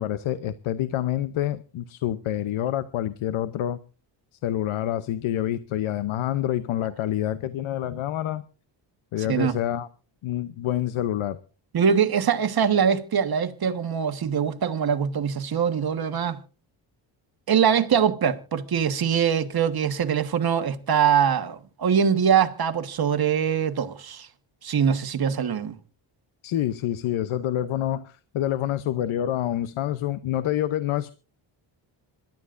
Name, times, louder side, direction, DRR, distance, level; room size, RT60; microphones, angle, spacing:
voice 1, 0.0-3.8 4.4-8.4 9.1-9.9 10.2-11.4 26.4-31.1, left 12 dB, 80° left, 0.8 m, -27 dB
voice 2, 9.2-9.6 11.7-16.4 17.5-24.3 24.6-25.8, right 7 dB, 50° right, 1.4 m, -23 dB
26.0 x 12.0 x 2.5 m
cardioid pair, 95°, 48 cm